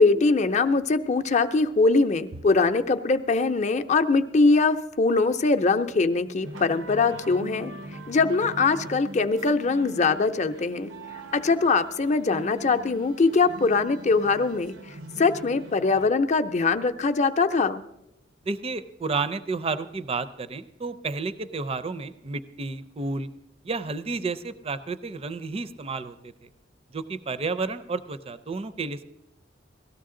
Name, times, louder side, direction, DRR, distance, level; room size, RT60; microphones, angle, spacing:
voice 1, 0.0-7.7 8.1-10.9 11.3-14.7 15.2-17.8, left 3 dB, 40° left, 8 dB, 0.6 m, -22 dB
sound 1, 6.4-16.1, right 1 dB, 90° right, 0.7 m, -41 dB
voice 2, 18.4-23.3 23.6-26.5 26.9-29.0, right 4 dB, 30° right, 14 dB, 0.5 m, -31 dB
18.0 x 13.0 x 3.8 m, 0.87 s
head